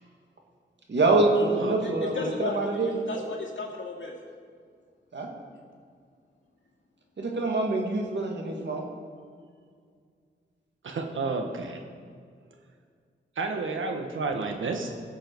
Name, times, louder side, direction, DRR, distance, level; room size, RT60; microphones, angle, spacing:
voice 1, 0.9-3.0 5.1-5.3 7.2-8.8, right 2 dB, 65° right, 1 dB, 2.1 m, -25 dB
voice 2, 1.8-4.1, left 3 dB, 75° left, -1 dB, 2.3 m, -35 dB
voice 3, 10.8-11.8 13.4-14.9, right 3 dB, 85° right, 4 dB, 1.3 m, -31 dB
17.5 x 7.7 x 4.6 m, 2.1 s
cardioid pair, 75°, 20 cm